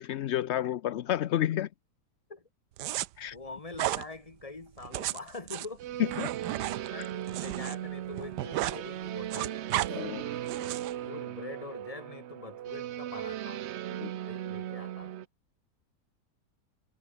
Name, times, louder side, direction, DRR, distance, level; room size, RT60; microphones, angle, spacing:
voice 1, 0.0-1.7 3.2-3.4 6.2-6.3 7.0-7.1 9.9-10.3 14.0-14.1, left 12 dB, 65° left, 0.6 m, -31 dB
sound 1, 2.8-3.1 3.7-4.0 4.8-7.7 8.0-8.8 9.1-9.9 10.5-10.9, right 15 dB, 90° right, 1.3 m, -33 dB
voice 2, 3.3-6.0 6.5-9.6 10.6-13.7 14.3-15.2, left 3 dB, 20° left, 1.9 m, -44 dB
sound 2, 5.8-15.3, right 12 dB, 65° right, 0.7 m, -37 dB
omnidirectional pair, 1.7 m